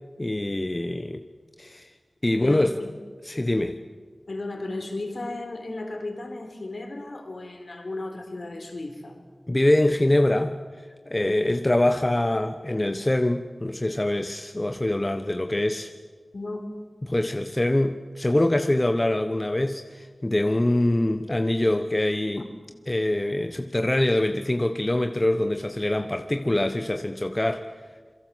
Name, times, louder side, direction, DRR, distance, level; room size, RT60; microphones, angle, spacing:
voice 1, 0.2-1.2 1.6-1.9 2.2-2.7 3.3-3.8 9.5-10.6 11.1-15.9 17.0-22.4 22.9-27.7, left 1 dB, 30° left, 7 dB, 1.1 m, -24 dB
voice 2, 2.3-2.9 4.3-9.2 16.3-16.7 22.4-22.5, left 2 dB, 65° left, 5 dB, 4.1 m, -35 dB
27.5 x 23.0 x 7.8 m, 1.5 s
wide cardioid pair, 60°, 0 cm